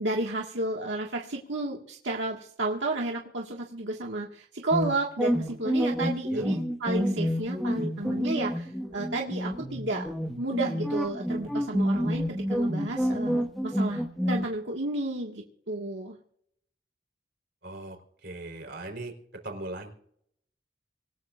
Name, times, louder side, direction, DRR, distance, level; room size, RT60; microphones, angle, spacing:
voice 1, 0.0-10.1 10.4-16.2, right 2 dB, 90° right, -1 dB, 1.9 m, -32 dB
sound 1, 4.7-14.4, equal, ahead, 1.6 m, -28 dB
voice 2, 17.6-19.1 19.4-19.9, right 2 dB, 65° right, 3 dB, 4.2 m, -39 dB
26.5 x 15.0 x 2.6 m, 0.66 s
head